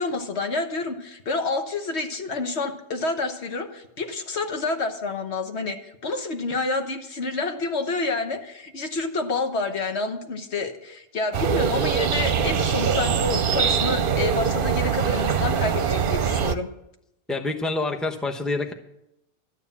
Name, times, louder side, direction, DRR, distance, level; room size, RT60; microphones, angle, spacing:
voice 1, 0.0-16.7, left 3 dB, 80° left, 6 dB, 1.5 m, -28 dB
sound 1, 11.3-16.5, right 7 dB, 60° right, 0.8 m, -23 dB
voice 2, 17.3-18.7, left 2 dB, ahead, 4 dB, 0.8 m, -27 dB
12.5 x 9.5 x 7.2 m, 0.85 s
omnidirectional pair, 1.1 m